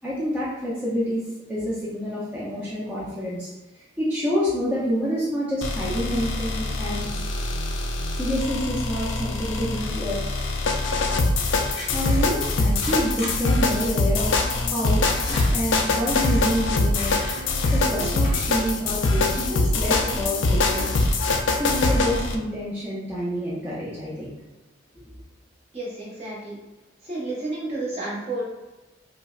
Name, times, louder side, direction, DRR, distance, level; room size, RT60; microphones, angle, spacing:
voice 1, 0.0-1.2 1.5-3.5 3.7-7.1 8.1-10.2 11.9-15.1 15.4-17.1 17.7-21.0 21.6-24.3, equal, 10° right, -9 dB, 0.5 m, -28 dB
sound 1, 5.6-22.4, left 2 dB, 65° left, 0.4 m, -23 dB
sound 2, 9.5-9.9 10.7-10.9 11.7-12.2 12.6-13.3 13.6-13.7 14.0-14.1 14.8-16.4 16.9-17.9 18.2-18.4, left 1 dB, 30° left, 0.8 m, -37 dB
sound 3, 9.8-21.1, right 1 dB, 50° right, 0.7 m, -43 dB
voice 2, 25.7-26.6 27.0-28.4, right 2 dB, 30° right, -6 dB, 1.0 m, -31 dB
4.9 x 2.1 x 2.4 m, 1.1 s
head